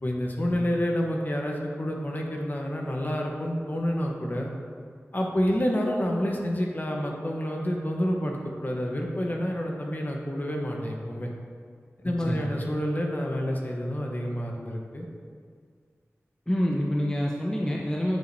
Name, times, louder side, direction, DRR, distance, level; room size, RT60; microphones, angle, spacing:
voice 1, 0.0-4.5 5.1-11.3 12.0-15.1, equal, 35° left, 0 dB, 1.0 m, -28 dB
voice 2, 16.5-18.2, equal, 15° left, -3 dB, 0.7 m, -27 dB
9.5 x 5.0 x 2.7 m, 2.1 s
wide cardioid pair, 60°, 5 cm